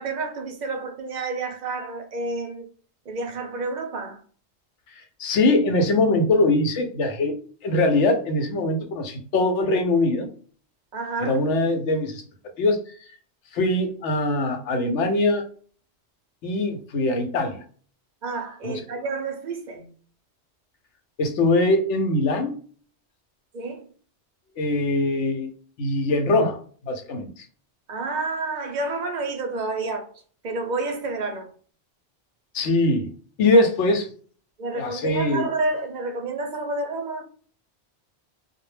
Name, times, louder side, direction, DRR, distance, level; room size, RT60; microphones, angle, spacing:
voice 1, 0.0-2.7 3.1-4.2 10.9-11.4 18.2-19.9 23.5-23.9 27.9-30.1 30.4-31.5 33.5-33.6 34.6-37.2, right 3 dB, 55° right, 0.5 m, -29 dB
voice 2, 5.2-7.3 7.6-10.3 11.2-12.2 12.6-12.8 13.5-15.4 16.4-17.6 18.6-18.8 21.2-22.5 24.6-25.5 25.8-26.6 26.8-27.5 32.5-33.1 33.4-34.0 34.7-35.5, left 2 dB, 90° left, 0.9 m, -22 dB
2.2 x 2.1 x 3.1 m
omnidirectional pair, 1.2 m